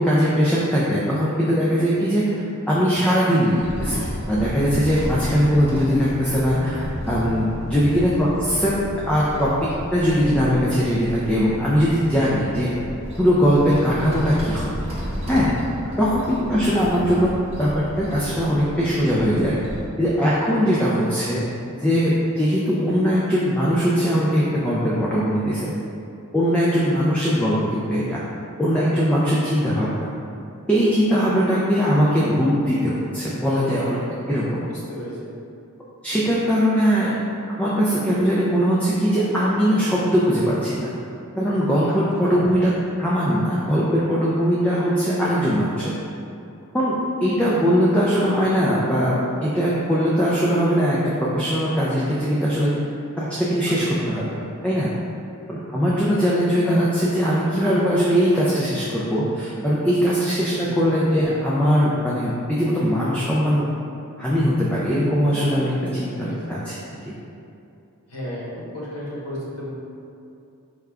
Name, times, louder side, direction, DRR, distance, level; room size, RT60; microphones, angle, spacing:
voice 1, 0.0-8.7 9.1-9.5 9.9-12.7 13.2-14.7 15.3-15.5 16.0-19.6 20.0-21.4 21.7-25.7 26.3-28.2 28.6-30.1 30.7-34.0 34.3-34.6 36.0-37.2 37.6-40.9 41.4-42.7 43.0-45.9 46.7-52.7 53.2-54.4 54.6-54.9 55.5-63.7 64.2-66.7, equal, 5° left, -8 dB, 0.3 m, -20 dB
sound 1, 3.6-19.9, equal, 30° right, 0.6 m, -33 dB
voice 2, 34.7-35.2 41.9-42.0 42.2-42.4 53.7-54.0 60.6-60.7 66.1-66.4 68.1-68.4 68.7-69.7, equal, 85° left, -6 dB, 1.1 m, -35 dB
4.8 x 2.2 x 3.4 m, 2.6 s
head